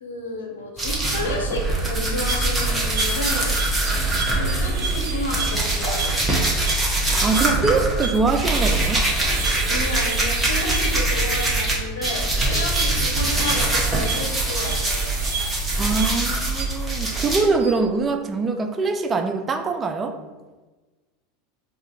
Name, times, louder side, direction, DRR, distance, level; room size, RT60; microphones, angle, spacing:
voice 1, 0.0-3.6 4.3-6.2 9.6-15.1, left 2 dB, 90° left, 0 dB, 0.6 m, -31 dB
sound 1, 0.8-11.7 12.0-17.4, right 2 dB, 10° right, 1.0 m, -23 dB
sound 2, 2.1-17.1 17.5-17.9, right 4 dB, 70° right, 1.0 m, -33 dB
voice 2, 7.2-9.0 15.8-20.2, right 4 dB, 25° right, 6 dB, 0.3 m, -23 dB
2.5 x 2.4 x 4.1 m, 1.3 s
hypercardioid pair, 95°, 0 cm